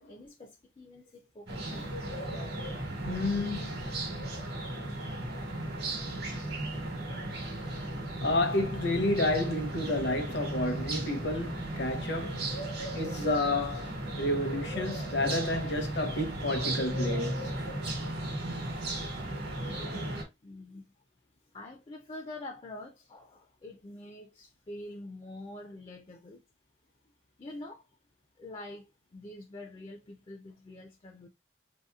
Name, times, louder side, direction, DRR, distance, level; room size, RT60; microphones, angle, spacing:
voice 1, 0.1-1.9 20.4-20.8 21.5-26.4 27.4-27.9 28.4-31.3, left 1 dB, 30° left, 0.3 m, -46 dB
sound 1, 1.5-20.2, right 1 dB, 60° right, 1.1 m, -35 dB
voice 2, 3.0-3.8 7.7-7.8 8.2-12.5 12.9-17.4, left 2 dB, 70° left, 0.7 m, -30 dB
3.3 x 2.8 x 2.3 m
head